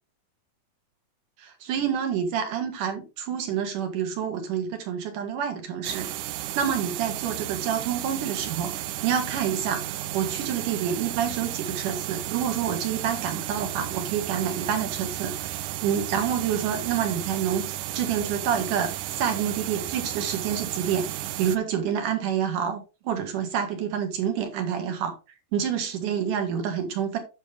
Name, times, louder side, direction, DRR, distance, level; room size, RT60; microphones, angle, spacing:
voice 1, 1.4-6.1 6.5-17.6 17.9-25.1 25.5-27.2, right 8 dB, 65° right, 2.9 m, -28 dB
sound 1, 5.8-21.6, right 14 dB, 85° right, 1.8 m, -33 dB
9.1 x 6.3 x 3.4 m
omnidirectional pair, 4.3 m